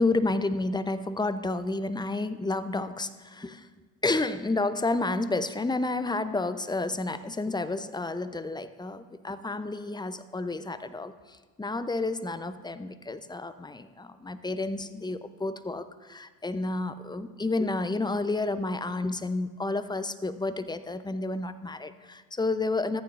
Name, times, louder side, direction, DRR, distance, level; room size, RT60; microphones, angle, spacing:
voice 1, 0.0-3.7 4.0-23.0, left 2 dB, 10° left, 12 dB, 0.5 m, -30 dB
14.0 x 9.2 x 2.5 m, 1.4 s
hypercardioid pair, 45°, 49 cm